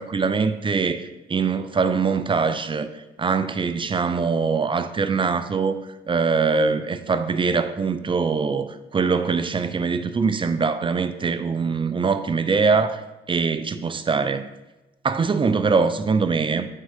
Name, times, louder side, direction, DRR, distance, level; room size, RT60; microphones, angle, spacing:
voice 1, 0.0-5.8 6.1-13.0 13.3-14.5 15.0-16.7, right 5 dB, 25° right, 0.4 m, -23 dB
8.6 x 3.8 x 3.5 m
cardioid pair, 90°, 20 cm